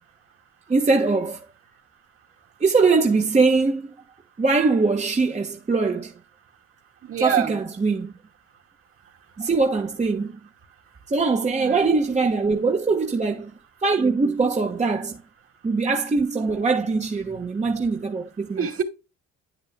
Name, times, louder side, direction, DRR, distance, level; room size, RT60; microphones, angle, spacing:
voice 1, 0.7-1.4 2.6-3.9 4.4-6.1 7.2-8.1 9.4-10.3 11.1-13.5 13.8-15.2 15.6-18.6, right 4 dB, 25° right, 1.4 m, -22 dB
voice 2, 7.0-7.6 11.5-11.9 18.6-18.8, right 8 dB, 45° right, 2.6 m, -26 dB
9.6 x 9.3 x 2.3 m
cardioid pair, 100°, 30 cm